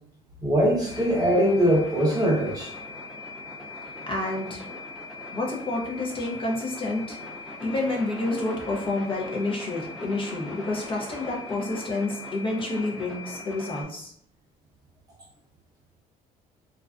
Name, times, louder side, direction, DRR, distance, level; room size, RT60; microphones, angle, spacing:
voice 1, 0.4-2.7, equal, 20° right, -4 dB, 1.0 m, -22 dB
sound 1, 0.9-13.8, left 2 dB, ahead, 0.8 m, -40 dB
voice 2, 4.1-4.7 5.3-7.2 7.6-14.1, left 2 dB, 30° left, 0 dB, 0.6 m, -29 dB
2.4 x 2.1 x 2.4 m, 0.66 s
cardioid pair, 110°, 17 cm